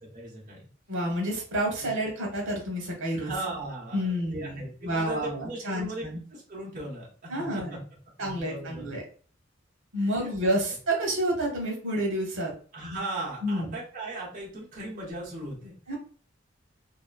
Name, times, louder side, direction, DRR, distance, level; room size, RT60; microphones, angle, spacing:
voice 1, 0.1-0.6 1.8-1.9 3.1-6.1 6.3-7.8 8.2-9.0 10.0-10.3 12.7-15.8, right 1 dB, 40° right, -5 dB, 1.0 m, -37 dB
voice 2, 0.9-3.3 3.9-4.5 4.8-6.2 7.3-7.7 8.2-9.0 9.9-12.5 13.4-13.7 15.9-16.0, right 1 dB, 80° right, 0 dB, 1.1 m, -29 dB
2.9 x 2.1 x 2.4 m, 0.41 s
head